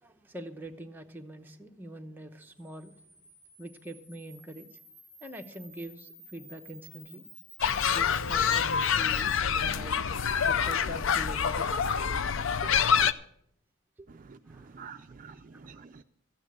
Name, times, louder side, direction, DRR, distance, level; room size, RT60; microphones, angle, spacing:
voice 1, 0.0-2.9 3.6-4.7 5.2-7.2 7.9-9.9 10.5-11.7 12.6-12.7 14.0-14.1 14.5-14.7 15.0-15.1, right 1 dB, 10° right, 0.9 m, -44 dB
Camera, 2.4-9.4, right 1 dB, 10° left, 1.4 m, -51 dB
sound 1, 7.6-13.1, left 7 dB, 65° left, 0.5 m, -26 dB
voice 2, 14.1-16.0, right 5 dB, 40° right, 0.4 m, -48 dB
13.0 x 9.0 x 6.2 m
head